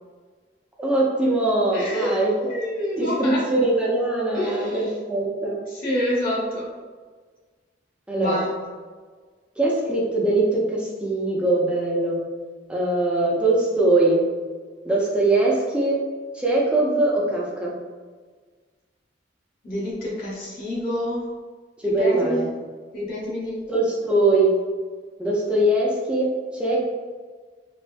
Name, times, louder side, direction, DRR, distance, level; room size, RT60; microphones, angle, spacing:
voice 1, 0.8-2.3 3.0-5.6 8.1-8.4 9.6-12.2 12.7-14.2 14.8-16.0 16.3-17.7 21.8-22.5 23.7-24.5 25.2-26.8, right 2 dB, 5° right, -5 dB, 0.6 m, -21 dB
voice 2, 1.7-3.5 4.3-5.0 5.7-6.6 8.1-8.5 19.6-21.3 21.8-22.5 22.9-23.6, left 1 dB, 50° left, -6 dB, 1.0 m, -28 dB
3.3 x 2.7 x 2.6 m, 1.5 s
head